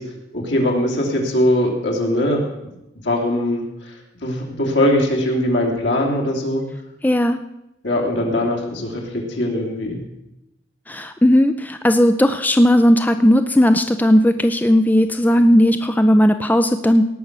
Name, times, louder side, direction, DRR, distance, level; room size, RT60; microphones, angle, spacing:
voice 1, 0.3-2.4 3.0-6.6 7.8-10.0, left 1 dB, 75° left, 0 dB, 3.0 m, -21 dB
voice 2, 7.0-7.4 10.9-17.1, equal, 10° left, 8 dB, 0.4 m, -15 dB
18.0 x 6.0 x 6.7 m, 0.91 s
head